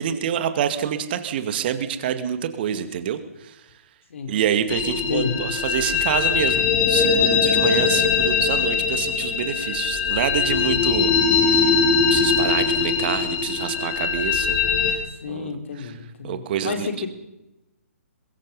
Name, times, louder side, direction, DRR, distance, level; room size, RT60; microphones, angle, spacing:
voice 1, 0.0-3.6 4.3-11.9 12.1-14.6 14.8-15.5 15.8-15.9 16.2-16.9, right 9 dB, 40° right, 10 dB, 2.2 m, -27 dB
sound 1, 4.7-14.9, left 5 dB, 30° left, 3.6 m, -21 dB
voice 2, 5.0-5.3 11.0-11.6 15.0-17.1, left 6 dB, 55° left, 7 dB, 3.5 m, -31 dB
23.0 x 21.5 x 5.5 m, 0.96 s
figure-of-eight pair, 130°, 8 cm